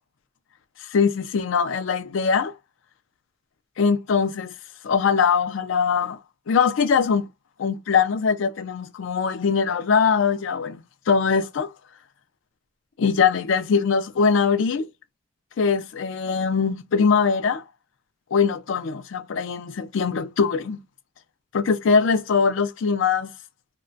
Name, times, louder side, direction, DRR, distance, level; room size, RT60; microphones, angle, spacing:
voice 1, 0.9-2.5 3.8-4.5 4.8-6.2 6.5-7.2 7.6-10.8 11.1-11.7 13.0-14.9 15.6-17.6 18.3-20.8 21.5-23.3, left 5 dB, 80° left, 0.4 m, -22 dB
2.9 x 2.2 x 2.6 m
head